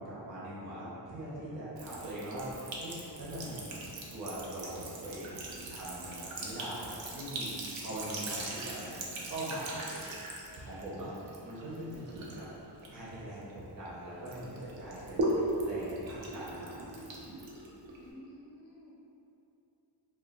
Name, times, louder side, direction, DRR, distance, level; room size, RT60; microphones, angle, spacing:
voice 1, 0.0-3.8 4.1-10.0 10.6-11.1 11.4-12.5 12.9-16.7, right 1 dB, 45° right, -8 dB, 0.6 m, -42 dB
Sink (filling or washing) / Trickle dribble, 1.8-13.9 14.3-18.1, right 1 dB, 85° right, 0.6 m, -39 dB
voice 2, 18.0-18.9, equal, 60° left, -4 dB, 0.6 m, -52 dB
2.2 x 2.2 x 3.8 m, 2.9 s
wide cardioid pair, 115°, 44 cm